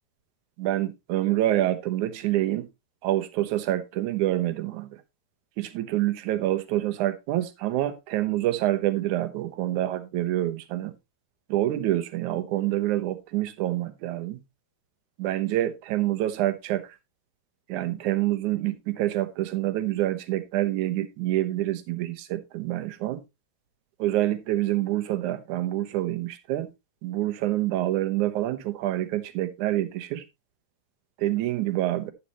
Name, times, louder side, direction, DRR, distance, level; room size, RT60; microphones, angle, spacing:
voice 1, 0.6-2.7 3.0-4.9 5.6-10.9 11.5-14.4 15.2-17.0 17.7-23.2 24.0-26.7 27.0-30.2 31.2-32.1, right 14 dB, 80° right, 1.7 m, -27 dB
12.0 x 8.8 x 3.0 m
omnidirectional pair, 4.9 m